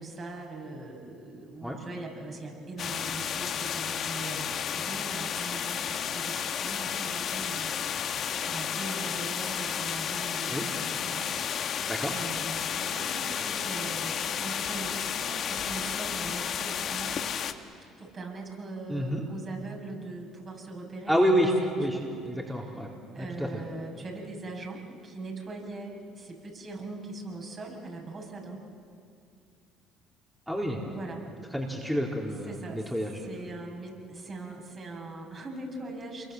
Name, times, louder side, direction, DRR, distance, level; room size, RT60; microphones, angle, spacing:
voice 1, 0.0-17.2 18.0-22.1 22.6-22.7 23.1-28.6 30.9-31.3 32.5-36.3, right 2 dB, 40° right, 1 dB, 7.5 m, -41 dB
sound 1, 2.8-17.5, left 8 dB, 55° left, 1.6 m, -32 dB
voice 2, 18.9-19.2 21.1-22.0 22.2-23.6 30.5-30.8 31.5-33.2, equal, ahead, -2 dB, 4.2 m, -28 dB
28.5 x 23.0 x 8.0 m, 2.3 s
hypercardioid pair, 60°, 0 cm